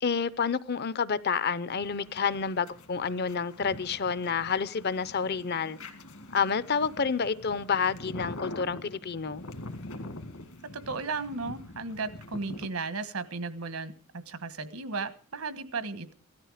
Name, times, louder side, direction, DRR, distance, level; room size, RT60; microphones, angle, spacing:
voice 1, 0.0-5.8 6.3-9.4, left 6 dB, 45° left, 0.6 m, -29 dB
sound 1, 1.6-12.7, left 2 dB, 70° left, 1.9 m, -44 dB
voice 2, 10.7-16.1, right 4 dB, 75° right, 1.3 m, -35 dB
16.5 x 13.5 x 4.9 m
head